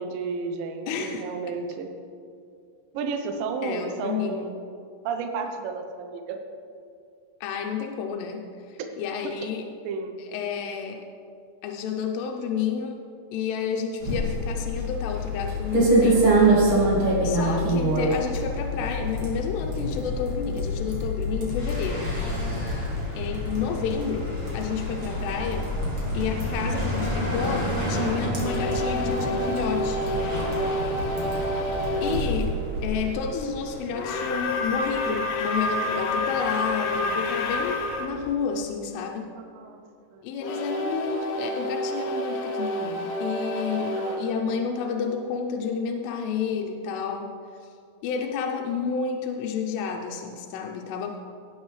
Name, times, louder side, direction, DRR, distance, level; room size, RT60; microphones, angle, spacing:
voice 1, 0.0-1.9 2.9-4.5 5.0-6.4 9.8-10.1 39.3-39.8 40.1-40.2 43.7-44.3, right 4 dB, 75° right, 5 dB, 2.2 m, -32 dB
voice 2, 0.9-1.2 3.6-4.5 7.4-9.6 10.2-11.1 11.6-13.0 13.3-16.5 16.9-22.2 23.1-25.7 26.1-30.0 32.0-32.5 32.8-39.3 40.2-47.3 48.0-51.2, left 6 dB, 85° left, 3 dB, 2.8 m, -30 dB
sound 1, 14.0-33.1, right 1 dB, 40° right, 2.2 m, -26 dB
sound 2, 21.5-38.3, equal, 5° left, 1.8 m, -35 dB
sound 3, 28.4-32.3 33.9-38.1 40.4-45.3, left 1 dB, 70° left, 2.2 m, -29 dB
17.5 x 7.9 x 3.2 m, 2.4 s
omnidirectional pair, 4.7 m